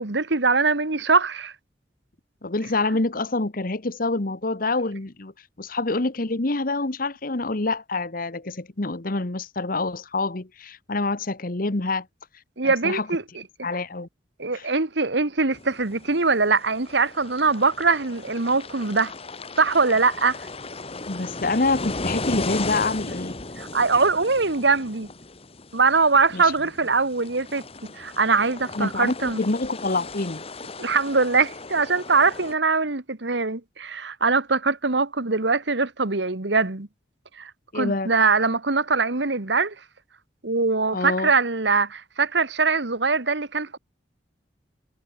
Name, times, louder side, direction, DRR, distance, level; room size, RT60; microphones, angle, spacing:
voice 1, 0.0-1.5 12.6-13.2 14.4-19.1 19.6-20.4 23.6-25.1 25.7-27.6 27.9-29.4 30.8-36.9 37.4-39.7 40.4-43.8, right 4 dB, 70° right, 1.6 m, -22 dB
voice 2, 2.4-5.3 5.6-12.1 12.6-13.1 13.6-14.1 14.5-14.7 21.1-23.4 26.3-26.5 28.8-30.4 37.7-38.1 40.9-41.3, left 2 dB, 50° left, 1.3 m, -26 dB
sound 1, 15.5-32.5, left 3 dB, 30° left, 1.5 m, -36 dB
head